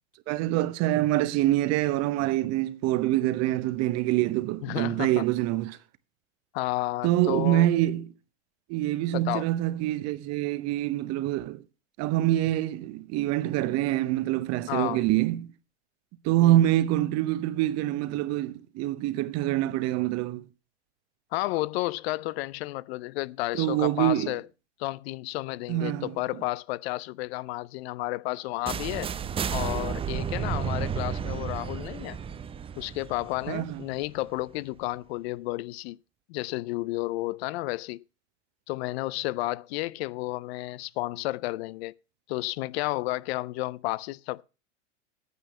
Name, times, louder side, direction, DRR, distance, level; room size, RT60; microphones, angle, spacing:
voice 1, 0.3-5.8 7.0-8.1 8.7-11.6 12.0-15.5 16.2-20.4 23.6-24.3 25.7-26.1 33.5-33.8, right 15 dB, 45° right, 1.0 m, -25 dB
voice 2, 4.6-5.2 6.5-7.7 9.1-9.5 14.7-15.0 16.4-16.6 21.3-24.4 24.8-29.1 29.5-32.2 32.8-36.0 36.3-38.0 38.7-41.9 42.3-44.4, left 19 dB, 60° left, 0.5 m, -32 dB
sound 1, 28.7-34.5, right 7 dB, 15° right, 0.5 m, -32 dB
9.5 x 8.0 x 5.5 m
hypercardioid pair, 110°, 37 cm